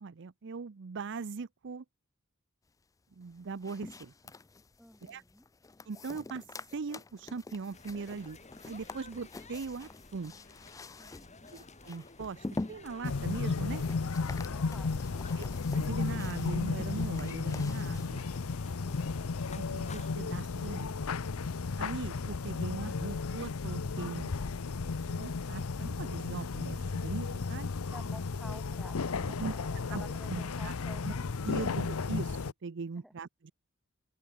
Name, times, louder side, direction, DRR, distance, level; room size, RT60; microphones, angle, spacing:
voice 1, 0.0-1.8 3.2-4.1 5.0-5.2 5.9-6.4 6.7-8.4 8.6-10.3 11.5-13.8 15.4-15.5 15.7-18.3 19.5-20.9 21.8-24.3 25.1-27.7 29.4-29.5 29.9-30.0 30.3-30.7 31.0-31.1 31.4-33.5, right 4 dB, 60° right, 0.6 m, -40 dB
sound 1, 3.2-18.5, left 2 dB, 15° left, 0.4 m, -47 dB
voice 2, 4.8-5.5 11.0-11.5 14.4-15.4 18.8-19.2 27.9-31.3 33.0-33.1, equal, ahead, 1.4 m, -52 dB
sound 2, 7.7-20.2, left 3 dB, 35° left, 5.7 m, -54 dB
sound 3, 13.0-32.5, left 4 dB, 90° left, 0.7 m, -34 dB
open air
head